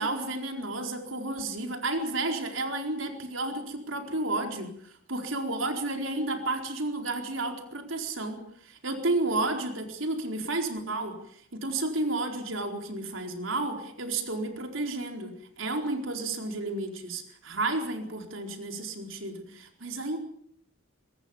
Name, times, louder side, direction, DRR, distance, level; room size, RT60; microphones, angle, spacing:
voice 1, 0.0-20.2, right 2 dB, 80° right, 4 dB, 4.4 m, -32 dB
23.5 x 20.5 x 7.3 m, 0.66 s
head